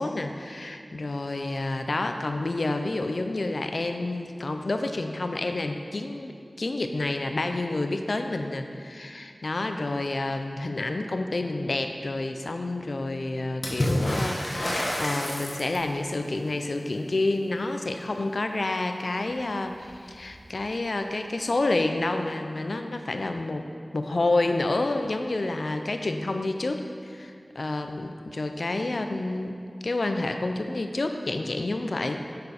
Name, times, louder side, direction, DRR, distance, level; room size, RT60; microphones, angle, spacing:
voice 1, 0.0-23.7 23.9-29.6 29.8-32.2, left 2 dB, 80° left, 6 dB, 0.5 m, -29 dB
Water / Splash splatter, 13.6-16.0 19.3-19.4 19.6-20.4 21.5-21.6, left 1 dB, 55° left, 1.2 m, -29 dB
6.7 x 6.5 x 4.2 m, 2.2 s
wide cardioid pair, 55°, 0 cm